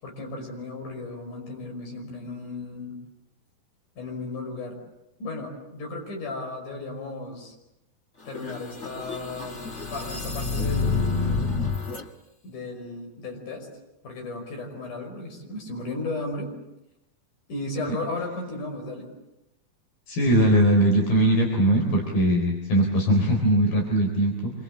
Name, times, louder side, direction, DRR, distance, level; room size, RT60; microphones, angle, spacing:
voice 1, 0.0-3.0 4.0-4.8 5.2-7.6 8.3-11.2 12.4-13.7 14.0-16.5 17.5-19.1, left 2 dB, 50° left, 2 dB, 7.1 m, -35 dB
sound 1, 8.3-12.0, left 4 dB, 85° left, 0.6 m, -28 dB
voice 2, 20.1-24.5, right 1 dB, 65° left, 1 dB, 5.6 m, -20 dB
27.0 x 24.5 x 8.8 m, 0.87 s
omnidirectional pair, 4.6 m